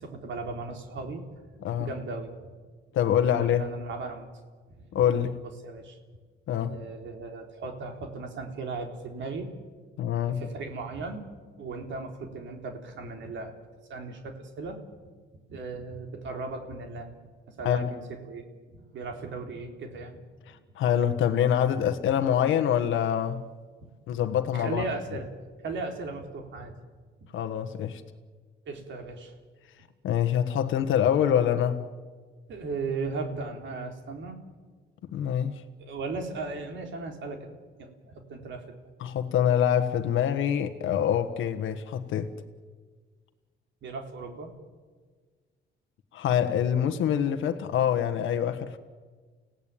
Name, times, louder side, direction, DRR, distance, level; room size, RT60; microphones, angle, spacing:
voice 1, 0.0-2.5 3.2-4.3 4.8-5.0 5.6-6.0 6.6-9.5 10.2-11.2 11.6-13.6 13.9-14.8 15.5-17.1 17.5-20.2 23.8-23.9 24.5-25.3 25.6-26.7 28.7-29.3 32.5-34.4 35.8-37.5 37.8-38.7 43.8-44.5, right 3 dB, 70° right, 3 dB, 3.9 m, -37 dB
voice 2, 2.9-3.6 4.9-5.4 6.5-6.8 10.0-10.4 17.6-17.9 20.5-23.5 24.1-24.8 27.3-28.0 30.0-31.8 35.1-35.6 39.0-42.3 46.1-48.8, left 9 dB, 80° left, 8 dB, 1.4 m, -25 dB
30.0 x 17.0 x 9.1 m, 1.5 s
cardioid pair, 90°, 20 cm